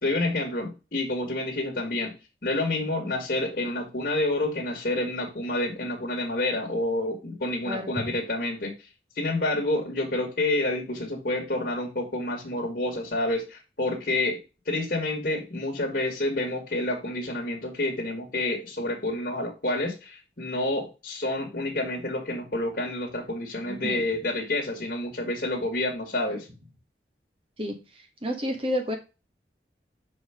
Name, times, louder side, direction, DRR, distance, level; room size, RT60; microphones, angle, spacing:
voice 1, 0.0-2.1 2.4-8.7 9.2-14.4 14.7-26.5, left 2 dB, 55° left, -1 dB, 1.8 m, -28 dB
voice 2, 7.6-8.1 23.7-24.0 26.3-26.4 27.6-27.8 28.2-28.9, equal, 30° right, 4 dB, 1.5 m, -30 dB
5.7 x 4.8 x 4.9 m, 0.29 s
head